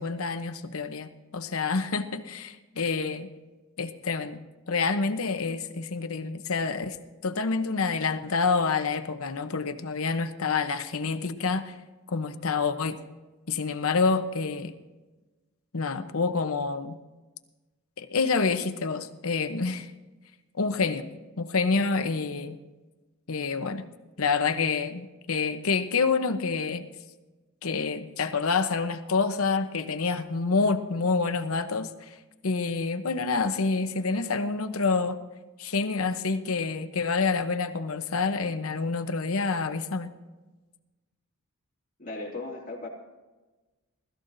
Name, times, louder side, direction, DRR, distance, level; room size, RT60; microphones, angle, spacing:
voice 1, 0.0-3.3 3.8-4.4 4.7-7.0 7.2-11.7 12.1-13.0 13.5-14.7 15.7-17.0 18.0-19.9 20.6-21.1 21.4-22.6 23.3-23.9 24.2-26.8 27.6-31.9 32.4-35.2 35.6-40.1, left 4 dB, 70° left, 9 dB, 0.8 m, -27 dB
voice 2, 42.0-42.9, left 2 dB, 40° left, -3 dB, 2.5 m, -36 dB
20.5 x 13.5 x 2.7 m, 1.2 s
head